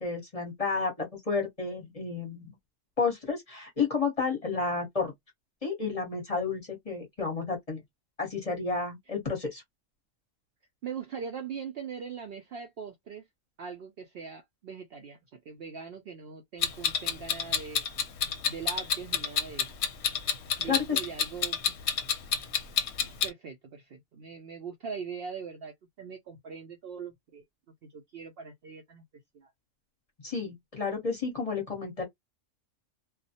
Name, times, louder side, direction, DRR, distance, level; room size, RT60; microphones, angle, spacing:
voice 1, 0.0-2.5 3.0-5.1 5.6-7.8 8.2-9.6 20.6-21.0 30.2-32.0, left 4 dB, 30° left, 0.8 m, -31 dB
voice 2, 10.8-13.2 13.6-17.8 18.5-19.7 20.6-21.6 23.0-27.4 27.8-29.0 29.3-29.5, right 6 dB, 65° right, 0.6 m, -41 dB
Clock, 16.6-23.3, left 7 dB, 65° left, 0.8 m, -28 dB
2.3 x 2.0 x 2.7 m
omnidirectional pair, 1.4 m